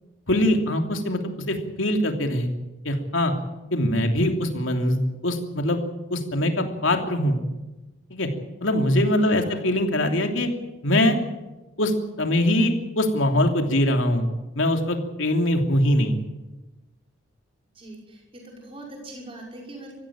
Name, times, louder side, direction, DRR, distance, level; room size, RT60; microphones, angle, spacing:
voice 1, 0.3-2.5 2.8-3.3 3.7-5.8 6.1-7.4 8.1-8.3 8.6-10.5 10.8-11.2 11.8-14.3 14.6-16.2, left 1 dB, 85° left, 4 dB, 3.0 m, -22 dB
voice 2, 9.2-9.6 17.7-19.9, right 1 dB, 30° right, -1 dB, 5.9 m, -42 dB
22.5 x 15.5 x 8.9 m, 1.0 s
head